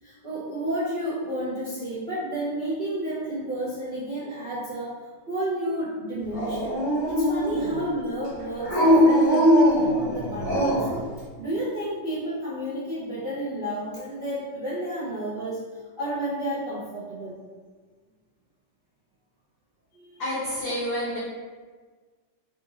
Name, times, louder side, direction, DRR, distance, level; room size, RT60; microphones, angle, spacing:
voice 1, 0.0-4.9 5.3-6.8 7.1-10.6 11.4-15.6 16.0-17.3 19.9-20.1, right 1 dB, 70° right, -11 dB, 0.5 m, -31 dB
Dog, 6.3-7.8 8.6-11.0, equal, 30° left, 0.8 m, -21 dB
voice 2, 20.2-21.2, equal, 70° left, -8 dB, 0.9 m, -29 dB
4.1 x 2.6 x 2.8 m, 1.5 s
omnidirectional pair, 2.3 m